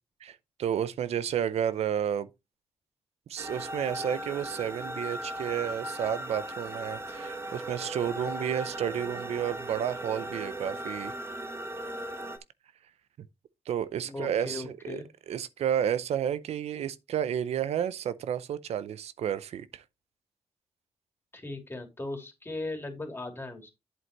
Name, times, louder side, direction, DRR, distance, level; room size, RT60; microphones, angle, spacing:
voice 1, 0.2-2.3 3.3-11.1 13.7-15.0 15.3-19.8, right 9 dB, 85° right, 0.5 m, -31 dB
sound 1, 3.4-12.4, right 1 dB, 25° right, 1.1 m, -37 dB
voice 2, 14.0-15.0 21.3-23.7, left 2 dB, 20° left, 2.9 m, -38 dB
8.0 x 7.7 x 3.0 m
cardioid pair, 85°, 11 cm